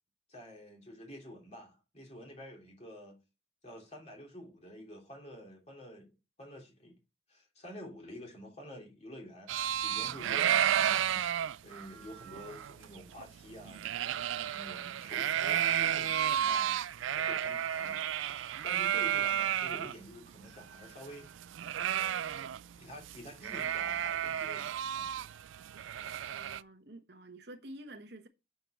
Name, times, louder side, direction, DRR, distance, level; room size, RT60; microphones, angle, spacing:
voice 1, 0.3-3.2 3.6-6.1 6.4-6.9 7.3-9.5 9.8-10.6 11.6-13.8 14.5-16.8 17.1-18.0 18.6-21.3 22.8-25.2, equal, 35° left, 3.2 m, -49 dB
sound 1, 9.5-19.9 20.3-20.4 20.6-22.8 23.0-23.2 23.4-26.6, right 10 dB, 85° right, 0.4 m, -32 dB
voice 2, 26.3-28.3, right 1 dB, 60° right, 1.1 m, -49 dB
8.2 x 7.1 x 4.4 m
head